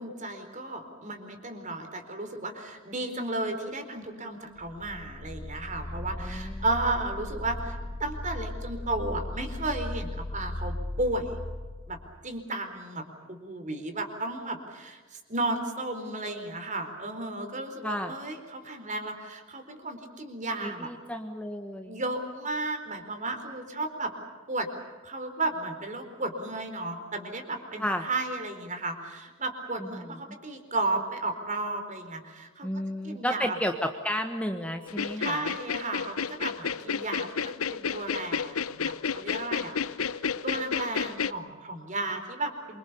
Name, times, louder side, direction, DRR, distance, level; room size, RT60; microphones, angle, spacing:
voice 1, 0.0-11.4 11.9-12.0 12.2-20.9 21.9-24.1 24.5-24.7 25.0-32.7 33.0-33.5 35.2-42.8, right 2 dB, 35° right, 6 dB, 4.3 m, -34 dB
sound 1, 4.6-12.3, left 1 dB, 60° left, 4.1 m, -37 dB
voice 2, 6.2-6.6 17.8-18.1 20.6-22.0 27.8-28.1 29.9-30.1 32.6-35.5, equal, 5° left, 5 dB, 1.5 m, -32 dB
sound 2, 34.9-41.3, left 6 dB, 90° left, 0.9 m, -31 dB
27.0 x 25.0 x 6.9 m, 1.3 s
head